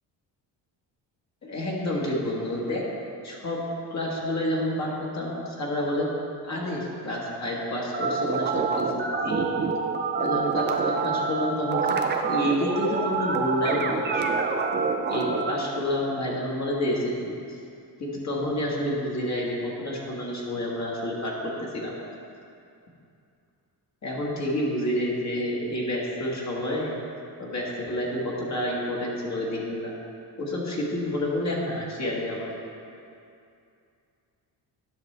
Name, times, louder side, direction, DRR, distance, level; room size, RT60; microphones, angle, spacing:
voice 1, 1.4-2.8 3.2-6.1 6.5-9.5 10.1-14.4 15.1-17.6 18.0-21.9 24.0-27.0 27.4-29.9 30.4-32.5, left 1 dB, 40° left, -4 dB, 1.4 m, -29 dB
sound 1, 7.9-15.5, right 4 dB, 25° right, 0.5 m, -26 dB
10.5 x 6.0 x 3.3 m, 2.5 s
cardioid pair, 120°, 42 cm